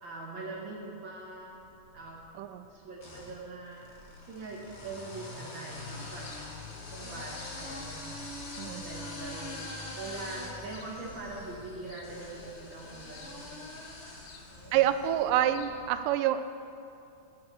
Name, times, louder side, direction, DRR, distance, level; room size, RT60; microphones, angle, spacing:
voice 1, 0.0-2.2 2.6-3.9 4.2-6.3 6.9-13.7 14.5-15.1, right 3 dB, 45° right, -2 dB, 1.8 m, -43 dB
sound 1, 1.6-2.3 3.0-15.3, left 2 dB, 40° left, 1.0 m, -44 dB
voice 2, 2.4-2.7 8.6-8.8 14.7-16.5, right 11 dB, 85° right, 10 dB, 2.2 m, -27 dB
sound 2, 5.7-15.9, left 6 dB, 80° left, 2.4 m, -50 dB
10.5 x 8.5 x 7.1 m, 2.6 s
omnidirectional pair, 3.7 m